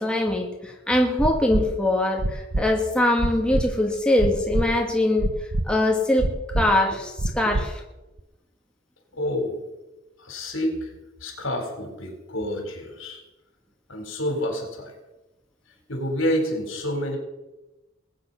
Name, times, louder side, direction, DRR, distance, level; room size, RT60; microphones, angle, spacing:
voice 1, 0.0-5.3 5.7-7.8, left 1 dB, 5° left, 1 dB, 1.5 m, -22 dB
sound 1, 1.2-1.6 2.2-2.6 3.2-3.6 4.2-4.7 5.2-5.7 6.2-6.7 7.2-7.7 8.2-8.3, right 1 dB, 50° right, 0.9 m, -24 dB
voice 2, 9.1-9.6 10.2-10.9 11.2-13.2 13.9-14.9 15.9-17.2, equal, 75° left, 3 dB, 4.0 m, -28 dB
21.0 x 8.8 x 5.6 m, 1.1 s
head